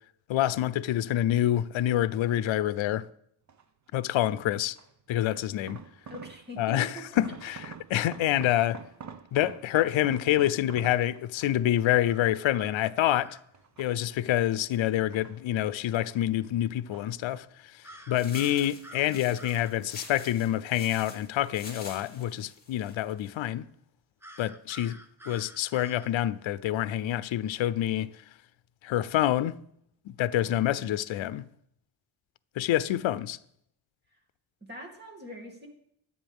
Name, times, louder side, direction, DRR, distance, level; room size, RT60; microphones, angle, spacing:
voice 1, 0.3-3.1 3.9-4.8 5.1-5.8 6.6-6.9 7.2-7.6 7.9-8.8 9.3-13.4 13.8-17.5 18.1-23.7 24.4-25.0 25.3-28.1 28.8-29.6 30.2-31.4 32.6-33.4, left 12 dB, 85° left, 0.6 m, -27 dB
sound 1, 3.5-3.9 4.8-6.7 6.9-11.7 12.2-13.1 13.5-14.4 14.9-16.2 16.5-17.7 17.9-18.5 18.9-19.3 19.6-19.7, right 6 dB, 40° right, 0.9 m, -47 dB
voice 2, 6.1-7.2 34.7-35.7, equal, 20° right, 2.6 m, -44 dB
sound 2, 12.1-13.4 17.8-19.7 24.2-26.1, right 1 dB, 5° right, 0.9 m, -49 dB
sound 3, 18.1-23.3, left 3 dB, 20° left, 2.4 m, -47 dB
24.0 x 8.6 x 3.6 m
wide cardioid pair, 145°, 45 cm